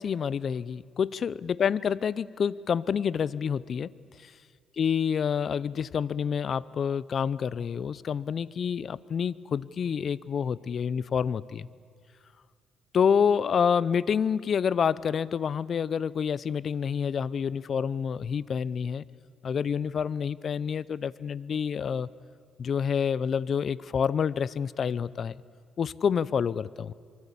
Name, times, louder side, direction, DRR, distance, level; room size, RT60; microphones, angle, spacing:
voice 1, 0.0-3.9 4.8-11.7 12.9-19.0 19.4-22.1 22.6-25.3 25.8-26.9, left 7 dB, 55° left, 20 dB, 0.6 m, -28 dB
25.0 x 24.0 x 8.5 m, 2.1 s
cardioid pair, 90°, 0 cm